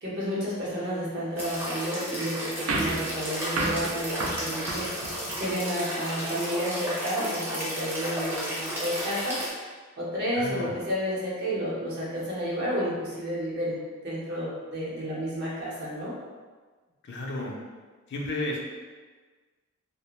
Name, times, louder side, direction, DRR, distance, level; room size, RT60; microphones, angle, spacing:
voice 1, 0.0-9.4 10.0-16.1, equal, 50° right, -7 dB, 0.8 m, -31 dB
sound 1, 1.4-9.5, equal, 10° right, 0.6 m, -33 dB
sound 2, 2.7-5.6, right 2 dB, 75° right, 0.4 m, -32 dB
voice 2, 10.3-10.7 17.1-17.6 18.1-18.6, left 1 dB, 50° left, -2 dB, 0.4 m, -32 dB
2.3 x 2.1 x 2.9 m, 1.4 s
head